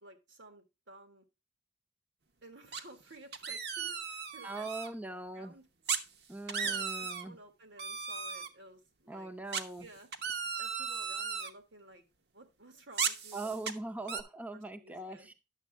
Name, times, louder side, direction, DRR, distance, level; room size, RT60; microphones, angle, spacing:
voice 1, 0.0-1.2 2.4-4.8 5.3-5.7 6.6-9.3 9.8-10.1 10.6-12.0 12.3-13.6 14.0-14.2 14.5-15.3, right 2 dB, 85° right, 5 dB, 1.9 m, -54 dB
sound 1, 2.7-3.0 3.3-4.9 5.9-6.0 6.3-7.2 7.8-8.5 9.5-11.5 12.9-13.7 14.1-14.2, right 6 dB, 60° right, 0.9 m, -36 dB
voice 2, 4.4-5.5 6.3-7.4 9.1-9.9 13.3-15.3, right 2 dB, 10° right, 5 dB, 0.6 m, -41 dB
10.0 x 6.9 x 3.4 m, 0.27 s
head